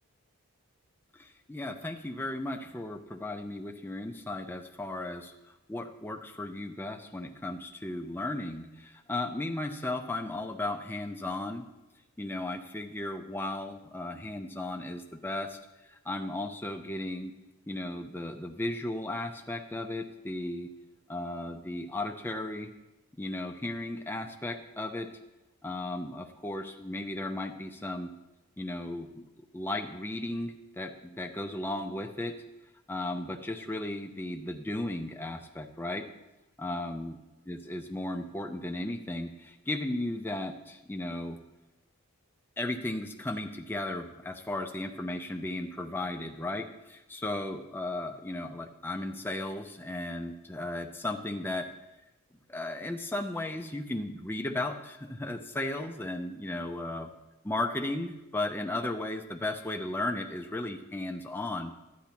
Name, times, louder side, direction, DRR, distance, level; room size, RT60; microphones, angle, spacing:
voice 1, 1.1-5.3 5.7-11.7 12.2-15.6 15.9-17.3 17.7-20.7 21.1-22.7 23.2-25.1 25.6-28.1 28.6-29.1 29.4-32.3 32.9-36.0 36.6-37.2 37.5-41.4 42.6-51.7 52.5-57.1 57.4-61.8, left 2 dB, 10° left, 5 dB, 0.5 m, -35 dB
12.0 x 9.3 x 2.9 m, 1.0 s
head